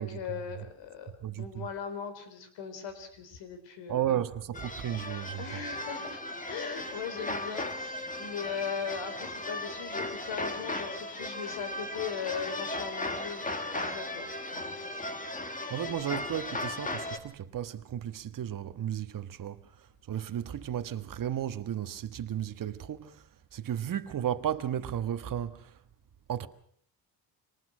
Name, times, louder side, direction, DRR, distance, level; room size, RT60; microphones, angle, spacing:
voice 1, 0.0-4.2 5.4-6.2 6.5-14.8, left 7 dB, 85° left, 4.0 m, -39 dB
voice 2, 1.2-1.7 3.9-5.6 15.7-19.6 20.1-23.2 23.5-25.7 26.3-26.5, right 10 dB, 50° right, 1.4 m, -34 dB
sound 1, 4.5-17.2, left 2 dB, 20° left, 2.1 m, -36 dB
24.5 x 19.5 x 6.2 m
cardioid pair, 110°, 43 cm